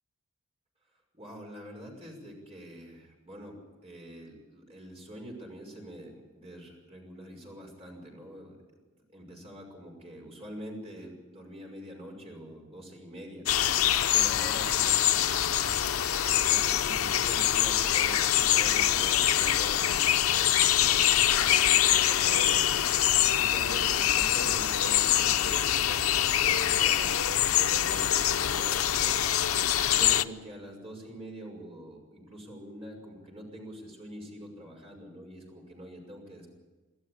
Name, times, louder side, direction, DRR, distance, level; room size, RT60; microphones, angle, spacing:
voice 1, 1.1-8.6 9.1-13.5 14.1-15.5 16.4-29.2 29.5-36.5, equal, 30° right, 0 dB, 5.8 m, -45 dB
sound 1, 13.5-30.2, left 11 dB, 90° left, 0.7 m, -24 dB
24.5 x 14.0 x 8.6 m, 1.2 s
head